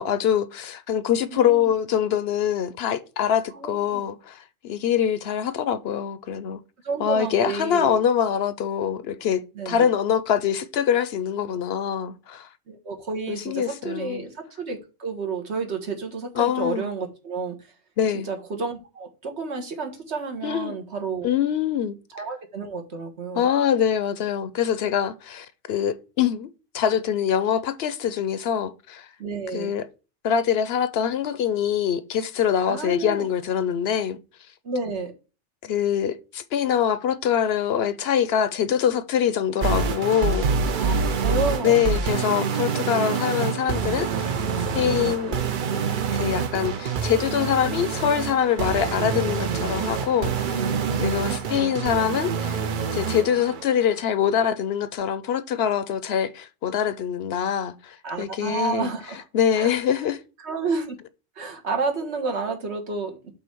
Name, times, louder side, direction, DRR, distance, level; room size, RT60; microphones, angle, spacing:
voice 1, 0.0-6.6 7.0-12.5 13.3-14.2 16.4-16.9 18.0-18.3 20.4-20.7 21.2-22.0 23.3-29.1 29.5-29.9 30.2-34.2 35.6-40.5 40.8-40.9 41.6-44.4 44.7-45.4 46.1-50.6 51.0-52.6 52.9-58.9 59.3-60.2, left 9 dB, 65° left, 0.8 m, -24 dB
voice 2, 1.3-1.7 3.5-4.0 6.8-8.0 9.5-9.9 12.7-17.5 18.1-21.3 22.1-23.5 29.2-29.7 32.6-33.3 34.6-35.1 40.7-41.8 50.5-51.1 58.0-59.2 59.6-59.7 60.4-61.0 61.4-63.3, right 4 dB, 70° right, 1.6 m, -30 dB
sound 1, 39.6-53.7, right 5 dB, 50° right, 0.7 m, -26 dB
5.6 x 4.1 x 6.0 m
omnidirectional pair, 1.2 m